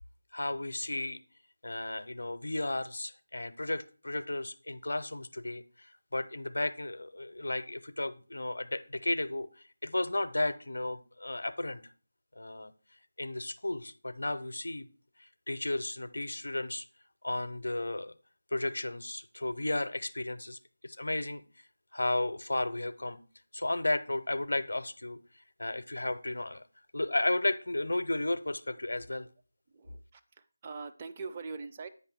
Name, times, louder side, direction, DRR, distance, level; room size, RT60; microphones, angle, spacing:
voice 1, 0.3-1.2 1.6-9.5 9.8-11.8 12.4-12.7 13.2-14.9 15.2-16.9 17.2-18.1 18.5-21.4 21.9-23.2 23.5-25.2 25.6-26.6 26.9-29.3, left 2 dB, 70° left, 13 dB, 0.5 m, -33 dB
voice 2, 29.7-30.2 30.6-31.9, right 4 dB, 25° right, 7 dB, 0.4 m, -42 dB
8.1 x 5.6 x 3.5 m, 0.38 s
figure-of-eight pair, 165°, 0 cm